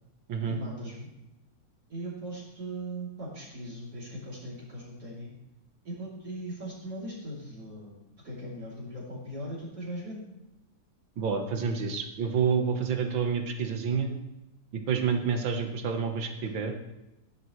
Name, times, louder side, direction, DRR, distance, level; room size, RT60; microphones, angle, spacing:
voice 1, 0.5-1.1 1.9-5.4 5.8-10.3, right 1 dB, 50° right, -6 dB, 3.8 m, -39 dB
voice 2, 11.2-14.1 14.7-16.7, right 6 dB, 75° right, 5 dB, 2.0 m, -28 dB
15.5 x 11.0 x 3.2 m, 0.94 s
omnidirectional pair, 2.2 m